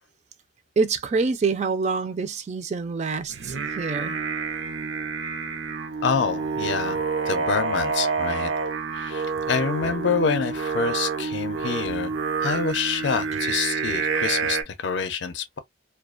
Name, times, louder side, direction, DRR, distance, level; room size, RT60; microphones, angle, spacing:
voice 1, 0.8-4.2, right 4 dB, 35° right, 0.4 m, -26 dB
Singing, 3.3-14.6, right 5 dB, 80° right, 0.6 m, -28 dB
voice 2, 6.0-8.5 9.0-12.1 12.4-15.6, left 5 dB, 70° left, 0.5 m, -27 dB
2.4 x 2.2 x 2.4 m
head